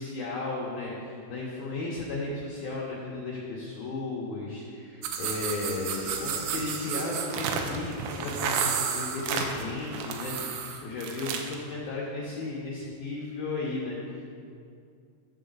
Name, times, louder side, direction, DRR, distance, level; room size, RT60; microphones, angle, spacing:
voice 1, 0.0-14.2, left 3 dB, 85° left, -4 dB, 2.1 m, -35 dB
sound 1, 5.0-11.6, right 6 dB, 85° right, 3.4 m, -32 dB
14.5 x 7.0 x 3.9 m, 2.4 s
omnidirectional pair, 5.9 m